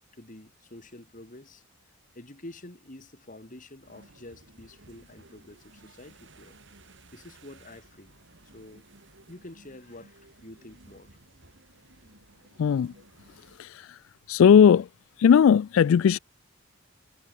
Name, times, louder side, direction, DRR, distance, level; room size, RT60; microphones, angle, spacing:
voice 1, 0.1-1.6 2.1-6.6 7.1-8.1 8.5-8.8 9.3-11.1, left 1 dB, 40° left, 2.0 m, -47 dB
sound 1, 3.8-13.6, right 2 dB, 60° right, 4.3 m, -56 dB
voice 2, 12.6-12.9 13.5-14.0 14.3-14.9 15.2-16.2, left 7 dB, 70° left, 0.3 m, -18 dB
head